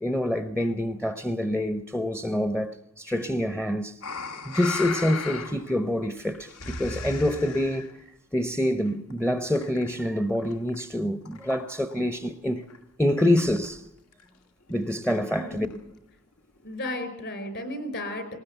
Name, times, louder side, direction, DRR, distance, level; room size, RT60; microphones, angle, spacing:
voice 1, 0.0-4.0 4.4-7.9 8.3-12.6 13.0-13.8 14.7-15.7, left 1 dB, 5° left, 0.7 m, -26 dB
sound 1, 4.0-5.8 6.1-7.9 8.8-10.1 10.3-10.9 11.3-12.1 12.4-12.5 12.7-12.8 13.0-13.1 13.3-13.8 14.1-14.2 14.7-16.0 16.6-16.7, left 4 dB, 75° left, 1.8 m, -37 dB
voice 2, 15.3-15.8 16.6-18.4, left 1 dB, 55° left, 4.7 m, -34 dB
19.5 x 19.0 x 8.1 m
head